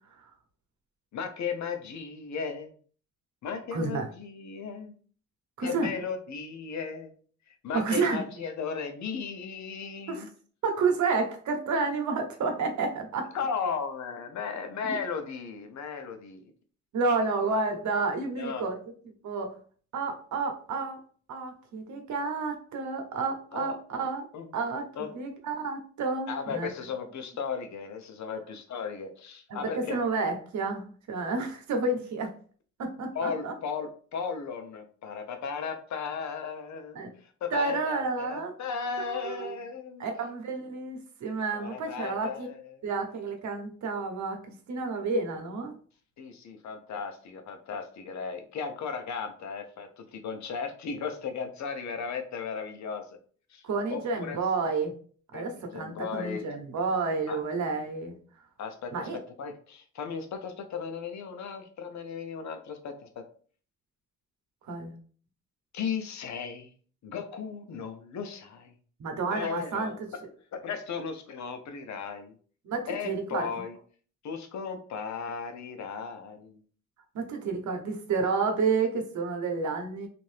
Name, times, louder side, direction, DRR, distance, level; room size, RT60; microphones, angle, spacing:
voice 1, 1.1-2.7 3.4-5.0 5.6-7.1 7.6-10.3 13.3-16.4 18.4-18.7 23.5-24.1 24.3-24.5 24.9-25.1 26.3-30.0 33.1-40.0 41.5-42.8 46.2-53.1 53.5-53.6 53.9-54.4 55.3-56.4 57.3-57.4 58.6-63.2 65.7-66.7 67.0-68.7 69.3-70.0 70.5-72.3 72.9-73.8 74.2-76.6, left 6 dB, 70° left, 6 dB, 0.7 m, -36 dB
voice 2, 3.7-4.1 5.6-5.9 7.7-8.2 10.1-10.2 10.6-13.3 14.8-15.0 16.9-18.7 19.2-19.5 19.9-21.0 21.3-24.2 24.5-26.7 29.5-32.3 32.8-33.5 36.9-37.1 37.5-38.5 39.0-39.5 40.0-42.5 42.8-44.4 44.7-45.7 53.6-54.9 55.3-58.2 58.9-59.2 64.7-65.0 69.0-69.9 72.6-73.5 77.1-80.1, right 4 dB, 70° right, 4 dB, 0.8 m, -30 dB
2.6 x 2.5 x 3.2 m, 0.44 s
cardioid pair, 100°, 30 cm